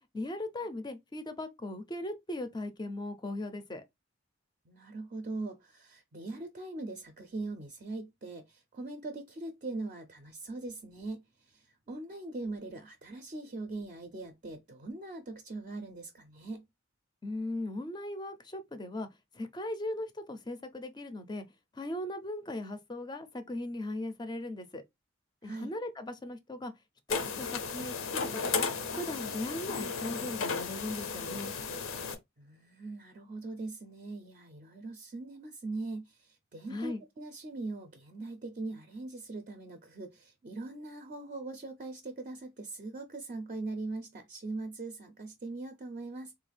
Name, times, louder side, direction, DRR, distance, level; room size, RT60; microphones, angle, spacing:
voice 1, 0.1-3.8 17.2-19.1 19.3-21.4 21.7-24.8 25.4-26.7 27.1-28.7 29.0-31.5 36.7-37.0, left 1 dB, 20° left, 0.4 m, -38 dB
voice 2, 4.7-16.7 25.4-25.7 32.4-46.3, right 2 dB, 35° right, 0.4 m, -41 dB
sound 1, 27.1-32.2, left 5 dB, 75° left, 0.6 m, -34 dB
3.6 x 2.3 x 3.2 m
head